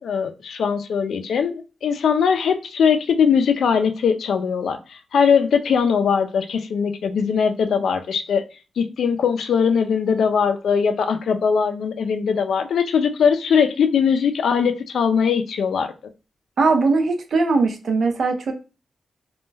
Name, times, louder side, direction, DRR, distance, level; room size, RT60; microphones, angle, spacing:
voice 1, 0.0-8.4 8.8-15.9, left 6 dB, 80° left, 0.3 m, -20 dB
voice 2, 16.6-18.5, right 3 dB, 65° right, 0.5 m, -20 dB
2.2 x 2.0 x 3.2 m
wide cardioid pair, 125°, 0 cm